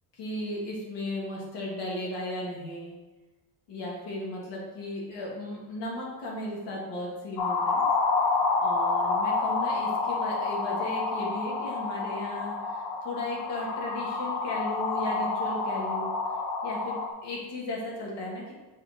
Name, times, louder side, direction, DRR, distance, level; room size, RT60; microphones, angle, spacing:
voice 1, 0.2-2.9 3.7-7.8 8.6-16.1 16.6-18.5, left 1 dB, 85° left, -3 dB, 1.9 m, -35 dB
sound 1, 7.4-17.1, left 4 dB, 60° left, 0.8 m, -28 dB
6.2 x 4.0 x 3.9 m, 1.2 s
cardioid pair, 160°, 43 cm